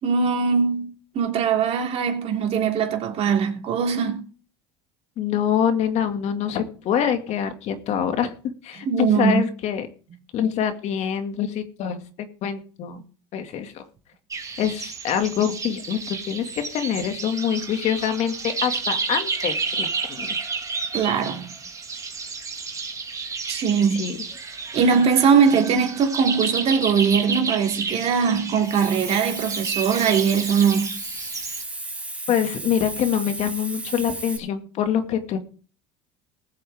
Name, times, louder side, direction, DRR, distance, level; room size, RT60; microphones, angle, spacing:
voice 1, 0.0-4.2 8.8-9.4 12.9-13.0 20.9-21.5 23.5-24.0 24.7-30.9, right 6 dB, 50° right, 3.1 m, -21 dB
voice 2, 5.2-8.3 8.6-9.9 10.3-13.0 13.3-13.8 14.6-16.5 16.7-20.3 23.9-24.2 32.3-35.4, left 9 dB, 55° left, 2.2 m, -25 dB
sound 1, 14.3-31.6, right 4 dB, 25° right, 2.3 m, -31 dB
Hiss, 28.6-34.4, right 2 dB, 10° right, 2.5 m, -34 dB
20.0 x 7.7 x 3.6 m
supercardioid pair, 85°, 13 cm